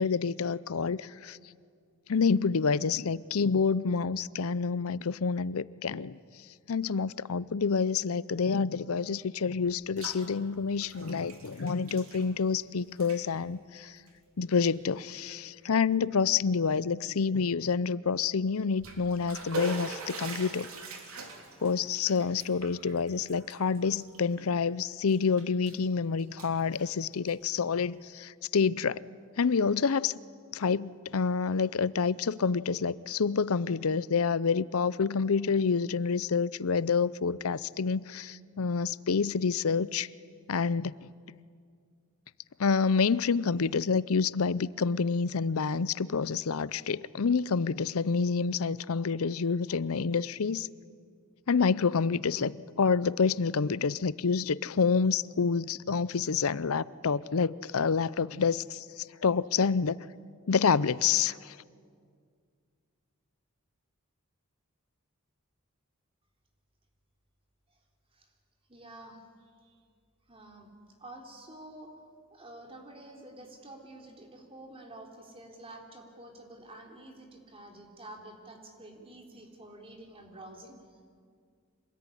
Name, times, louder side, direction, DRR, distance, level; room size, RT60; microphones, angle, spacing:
voice 1, 0.0-1.4 2.1-6.2 6.7-13.9 14.4-20.7 21.6-29.0 29.4-30.1 30.5-40.1 40.5-40.9 42.6-50.7 51.5-58.8 59.2-60.0 60.5-61.5, left 5 dB, 75° left, 0.6 m, -28 dB
Bathtub (filling or washing), 9.6-10.3 10.5-12.6 12.9-13.2 14.0-14.1 14.7-14.8 15.3-15.4 18.6-24.7 25.1-25.9 26.2-27.5, right 3 dB, 75° right, 3.5 m, -43 dB
voice 2, 68.7-69.8 70.3-70.7 71.0-71.9 72.3-81.0, right 1 dB, 25° right, 3.6 m, -49 dB
26.5 x 20.0 x 9.9 m
head